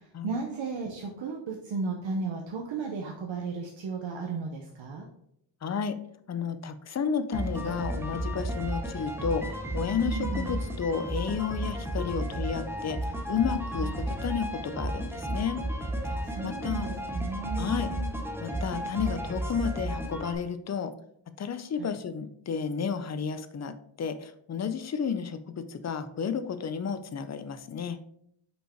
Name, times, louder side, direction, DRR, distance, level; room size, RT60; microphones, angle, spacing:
voice 1, 0.2-5.1 10.0-10.6 13.8-13.9 16.1-18.1 21.8-21.9, right 4 dB, 75° right, 0 dB, 0.9 m, -35 dB
voice 2, 5.6-6.0 6.3-15.6 16.4-16.9 17.6-17.9 18.4-20.9 21.4-28.0, left 6 dB, 35° left, 11 dB, 0.4 m, -32 dB
sound 1, 7.3-20.3, right 1 dB, 5° right, 0.7 m, -33 dB
5.4 x 4.7 x 4.4 m, 0.72 s
wide cardioid pair, 170°, 46 cm